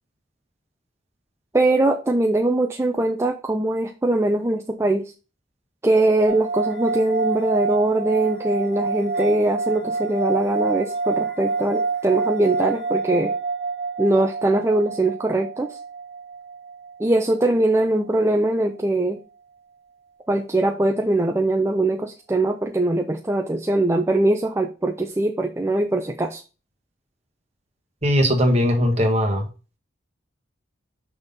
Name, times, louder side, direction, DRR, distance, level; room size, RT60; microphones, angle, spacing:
voice 1, 1.5-5.1 5.8-13.3 14.0-15.8 17.0-19.2 20.3-26.4, right 2 dB, 15° right, 0.4 m, -21 dB
sound 1, 6.3-17.6, right 4 dB, 55° right, 1.5 m, -27 dB
voice 2, 28.0-29.5, equal, 35° right, 1.3 m, -19 dB
6.0 x 3.6 x 5.3 m
head